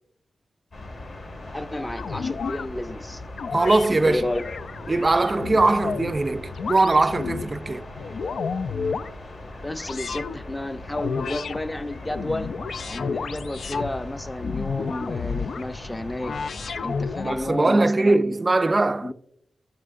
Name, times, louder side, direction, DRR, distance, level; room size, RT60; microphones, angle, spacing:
sound 1, 0.7-17.5, left 2 dB, 70° left, 1.8 m, -39 dB
voice 1, 1.5-3.2 3.9-4.5 9.6-12.5 12.9-16.3 16.8-18.4 19.0-19.1, left 1 dB, 15° left, 0.6 m, -31 dB
sound 2, 2.0-2.7 3.4-3.9 4.3-6.1 6.6-7.5 7.9-9.1 9.8-10.4 10.9-11.6 12.0-13.9 14.4-15.6 16.2-17.4, left 5 dB, 90° left, 0.4 m, -31 dB
voice 2, 3.5-4.2 4.9-7.9 17.2-19.1, right 2 dB, 30° right, 0.3 m, -21 dB
16.0 x 7.5 x 2.5 m
wide cardioid pair, 150°, 0 cm